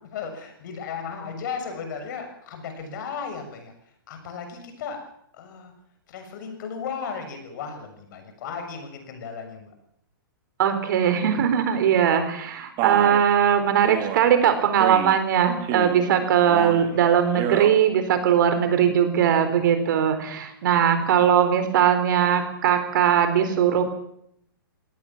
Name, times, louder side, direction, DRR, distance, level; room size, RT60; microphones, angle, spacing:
voice 1, 0.0-3.7 4.1-5.0 5.3-5.7 6.1-9.7 21.2-21.3 23.1-23.2, left 6 dB, 55° left, 6 dB, 6.9 m, -35 dB
voice 2, 10.6-23.8, right 8 dB, 60° right, 9 dB, 4.2 m, -20 dB
Male speech man speaking, 12.8-13.2 13.8-14.2 14.8-15.2 15.6-16.1 16.5-16.9 17.3-17.8, right 12 dB, 35° right, 2.4 m, -28 dB
21.0 x 18.0 x 7.5 m, 0.73 s
hypercardioid pair, 130°, 12 cm